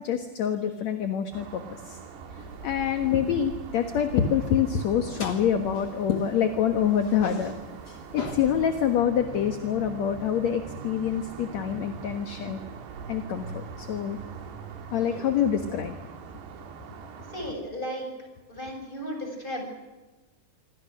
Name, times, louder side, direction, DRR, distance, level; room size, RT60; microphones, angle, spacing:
voice 1, 0.0-2.0 2.4-7.5 8.1-12.6 13.1-14.2 14.9-16.0, left 8 dB, 55° left, 6 dB, 2.1 m, -26 dB
sound 1, 1.3-17.5, right 5 dB, 90° right, 4.3 m, -42 dB
sound 2, 2.4-6.6 6.9-9.0, left 2 dB, 30° left, 2.9 m, -43 dB
voice 2, 17.3-18.1 18.5-19.6, equal, 10° left, 3 dB, 7.4 m, -35 dB
27.0 x 25.0 x 6.5 m, 1.1 s
omnidirectional pair, 4.6 m